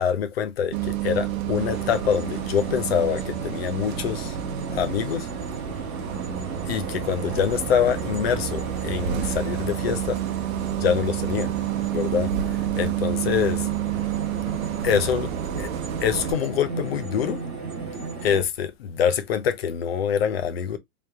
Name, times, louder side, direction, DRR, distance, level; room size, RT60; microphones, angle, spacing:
voice 1, 0.0-4.4 4.7-5.3 6.7-10.2 10.8-11.5 11.9-13.7 14.8-15.3 15.6-15.7 16.0-17.4 18.2-20.8, left 8 dB, 45° left, 0.6 m, -25 dB
Bus, 0.7-16.3, right 11 dB, 65° right, 0.8 m, -29 dB
sound 1, 1.6-18.4, right 4 dB, 15° right, 0.6 m, -36 dB
3.4 x 2.7 x 3.4 m
supercardioid pair, 180°, 44 cm